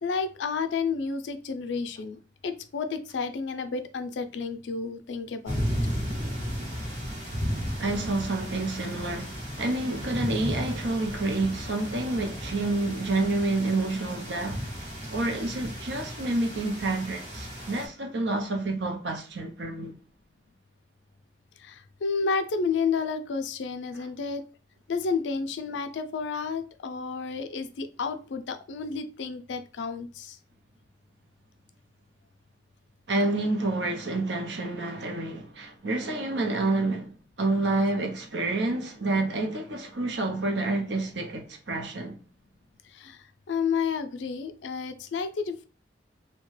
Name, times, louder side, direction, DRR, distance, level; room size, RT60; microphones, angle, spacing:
voice 1, 0.0-2.2 2.4-5.7 21.6-24.4 24.9-30.4 42.9-45.7, left 5 dB, 80° left, 0.4 m, -31 dB
sound 1, 5.5-17.9, equal, 40° right, 1.0 m, -34 dB
voice 2, 7.8-14.6 15.1-19.9 33.1-42.2, right 2 dB, 75° right, 0.6 m, -28 dB
2.8 x 2.2 x 3.1 m
head